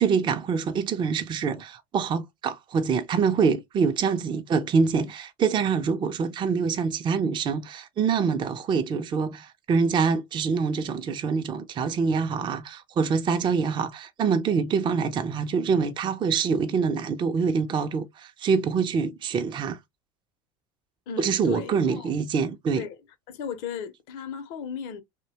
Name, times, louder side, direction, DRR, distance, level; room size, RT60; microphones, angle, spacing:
voice 1, 0.0-19.8 21.2-22.8, right 5 dB, 30° right, 0.4 m, -25 dB
voice 2, 21.1-22.1 22.8-23.0 23.3-25.0, left 7 dB, 65° left, 0.7 m, -35 dB
2.6 x 2.1 x 2.7 m
hypercardioid pair, 85°, 17 cm